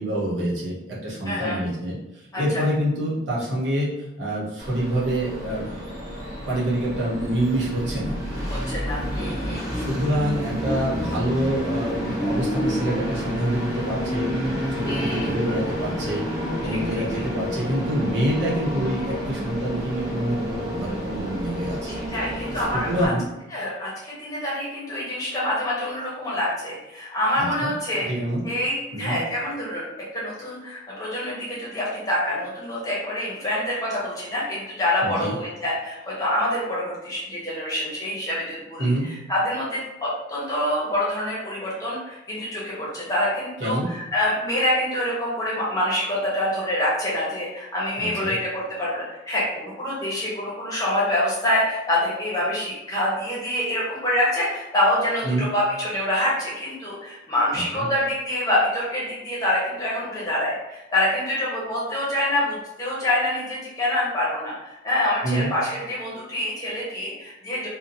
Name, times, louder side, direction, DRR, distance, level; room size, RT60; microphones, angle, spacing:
voice 1, 0.0-5.8 6.5-8.2 9.7-21.9 22.5-23.2 27.4-27.7 28.0-28.5 28.9-29.2 35.0-35.3 38.8-39.1 43.6-43.9 48.0-48.3 55.2-55.5 57.5-57.8 65.2-65.5, right 1 dB, 80° right, -6 dB, 0.9 m, -26 dB
voice 2, 1.3-1.6 2.3-2.6 8.5-9.9 14.9-15.3 16.6-16.8 21.9-23.1 23.5-28.1 28.4-67.7, left 1 dB, 20° left, -7 dB, 0.8 m, -26 dB
Train, 4.6-23.1, equal, 20° right, 0.7 m, -29 dB
2.7 x 2.1 x 2.6 m, 0.96 s
head